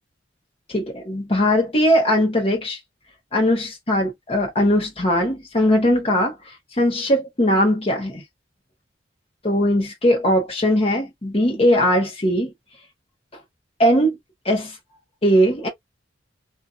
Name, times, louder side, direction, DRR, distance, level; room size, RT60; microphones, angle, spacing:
voice 1, 0.7-2.8 3.3-6.3 6.8-8.2 9.4-12.5 13.8-14.2 14.4-14.8 15.2-15.7, equal, 30° left, 1.0 m, -19 dB
2.6 x 2.5 x 2.4 m
head